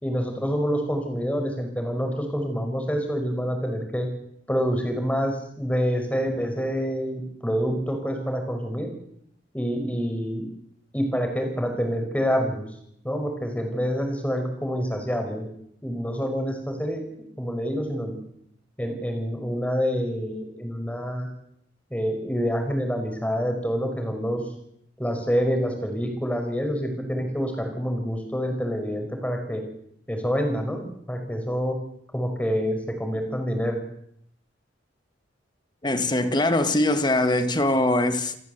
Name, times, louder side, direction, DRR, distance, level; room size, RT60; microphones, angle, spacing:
voice 1, 0.0-4.1 4.5-8.9 9.5-10.4 10.9-12.7 13.0-15.5 15.8-17.0 17.4-18.2 18.8-21.3 21.9-24.4 25.0-29.6 30.1-31.8 32.1-33.8, equal, 10° left, 5.4 m, -27 dB
voice 2, 35.8-38.4, left 1 dB, 25° left, 1.7 m, -22 dB
28.5 x 15.0 x 8.1 m
head